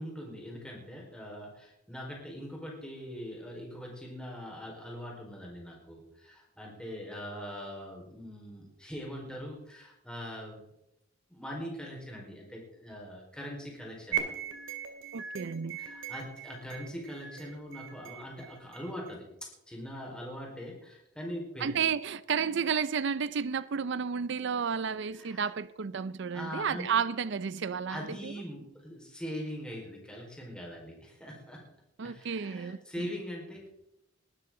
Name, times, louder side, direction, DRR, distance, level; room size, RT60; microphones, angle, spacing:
voice 1, 0.0-10.6 11.3-14.2 15.8-21.8 25.1-25.5 26.3-26.9 27.9-31.6 32.0-33.7, equal, 5° left, 4.5 m, -42 dB
sound 1, 14.1-19.1, right 9 dB, 90° right, 2.4 m, -39 dB
voice 2, 15.1-15.8 21.6-28.3 32.0-33.1, right 6 dB, 65° right, 0.5 m, -32 dB
19.5 x 13.0 x 3.8 m
head